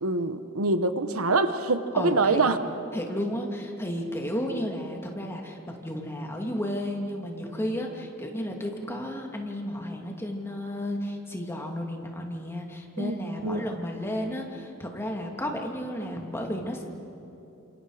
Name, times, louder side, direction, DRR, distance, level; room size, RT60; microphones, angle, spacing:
voice 1, 0.0-2.6 13.0-13.1 13.4-13.6, right 3 dB, 85° right, 10 dB, 1.2 m, -25 dB
voice 2, 1.9-2.4 2.9-16.8, equal, 10° left, 1 dB, 2.6 m, -33 dB
30.0 x 27.5 x 5.0 m, 3.0 s
head